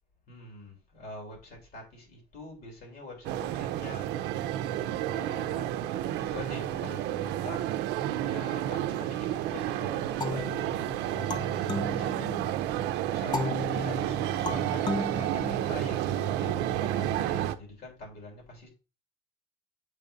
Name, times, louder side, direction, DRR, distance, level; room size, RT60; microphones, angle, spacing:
voice 1, 0.3-4.3 5.1-7.7 8.2-10.6 11.0-12.5 13.1-18.7, left 2 dB, 70° left, 3.2 m, -44 dB
sound 1, 3.2-17.6, right 12 dB, 90° right, 0.5 m, -31 dB
sound 2, 10.2-12.7 13.3-16.1, left 3 dB, 25° left, 0.6 m, -36 dB
7.4 x 2.7 x 5.1 m
cardioid pair, 110°, 17 cm